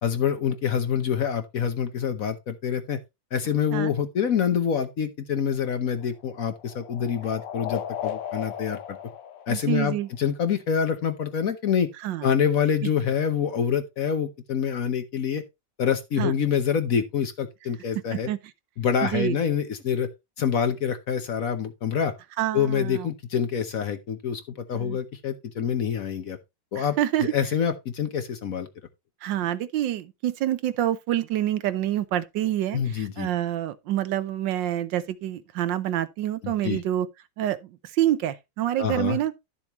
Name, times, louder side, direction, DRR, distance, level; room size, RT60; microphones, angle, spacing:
voice 1, 0.0-3.0 3.3-9.0 9.5-11.9 12.2-15.4 15.8-18.3 18.8-20.1 20.4-22.1 22.5-24.4 24.7-26.4 26.7-27.0 27.3-28.7 32.7-33.3 36.4-36.8 38.8-39.2, left 7 dB, 55° left, 1.1 m, -26 dB
sound 1, 5.5-10.3, left 10 dB, 75° left, 1.5 m, -36 dB
voice 2, 9.5-10.1 12.0-12.3 16.2-16.3 18.1-18.4 19.0-19.4 22.4-23.1 24.7-25.0 26.8-27.3 29.2-37.1 37.4-39.3, right 12 dB, 75° right, 1.4 m, -27 dB
11.5 x 7.1 x 3.0 m
omnidirectional pair, 2.0 m